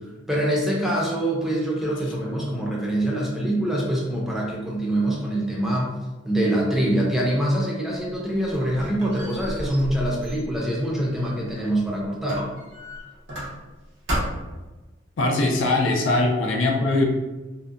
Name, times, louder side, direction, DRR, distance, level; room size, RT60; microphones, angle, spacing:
voice 1, 0.3-5.9 6.2-12.4, right 1 dB, ahead, -4 dB, 0.5 m, -24 dB
Squeak, 8.0-11.8 12.3-13.8 14.1-14.6, equal, 85° right, 0.8 m, -33 dB
voice 2, 15.2-17.0, left 2 dB, 85° left, 1 dB, 0.4 m, -21 dB
2.6 x 2.1 x 2.4 m, 1.2 s
head